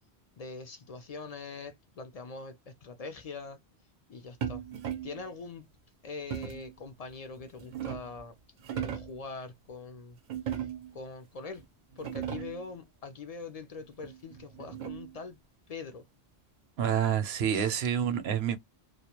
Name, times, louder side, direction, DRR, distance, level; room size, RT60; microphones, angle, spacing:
voice 1, 0.4-3.6 4.1-4.6 5.0-5.7 6.0-8.3 8.7-10.2 10.5-10.7 10.9-11.6 12.0-15.4 15.7-16.0 17.5-17.8, left 4 dB, 55° left, 0.4 m, -43 dB
sound 1, 4.4-5.2 6.3-6.7 7.4-8.2 8.6-9.2 10.3-11.0 11.6-11.7 11.9-12.7 14.0-15.2, right 9 dB, 55° right, 0.6 m, -37 dB
voice 2, 16.8-18.6, right 8 dB, 75° right, 0.8 m, -28 dB
2.2 x 2.1 x 2.8 m
omnidirectional pair, 1.1 m